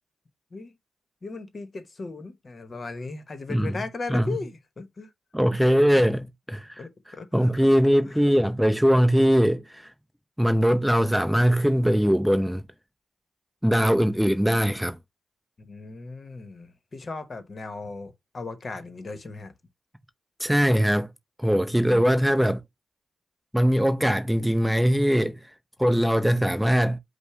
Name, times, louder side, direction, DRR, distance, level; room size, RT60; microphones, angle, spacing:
voice 1, 1.2-5.1 5.9-6.1 6.8-7.5 8.0-8.2 15.6-19.5 21.7-22.1, left 3 dB, 45° left, 0.9 m, -37 dB
voice 2, 5.3-6.8 7.3-9.9 10.4-12.6 13.6-15.0 20.4-21.1 21.4-22.6 23.5-25.4 25.8-27.0, equal, 5° right, 0.5 m, -21 dB
5.2 x 2.1 x 4.6 m
cardioid pair, 55°, 0 cm